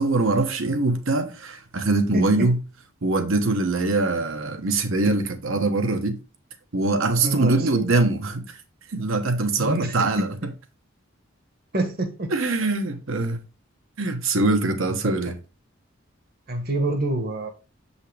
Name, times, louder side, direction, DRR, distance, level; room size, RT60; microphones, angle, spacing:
voice 1, 0.0-2.6 3.0-6.2 6.7-8.4 8.9-10.3 12.3-13.4 14.0-15.3, right 2 dB, 70° right, 1.1 m, -23 dB
voice 2, 2.1-2.5 7.2-7.9 9.5-10.3 11.7-12.3 14.9-15.1 16.5-17.5, right 1 dB, 45° right, 1.2 m, -27 dB
7.1 x 5.6 x 3.3 m
head